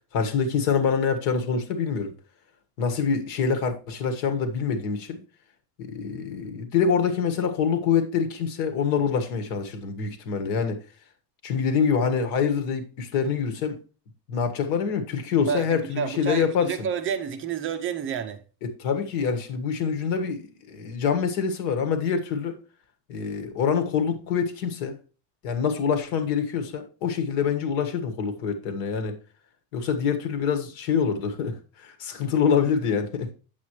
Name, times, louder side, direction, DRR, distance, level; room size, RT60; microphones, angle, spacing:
voice 1, 0.1-2.1 2.8-5.2 5.8-10.8 11.4-13.8 14.3-16.7 18.6-22.6 23.1-25.0 25.4-29.1 29.7-33.3, left 6 dB, 85° left, 1.7 m, -25 dB
voice 2, 15.4-18.4, right 7 dB, 30° right, 0.5 m, -30 dB
8.4 x 7.4 x 3.1 m
cardioid pair, 170°, 44 cm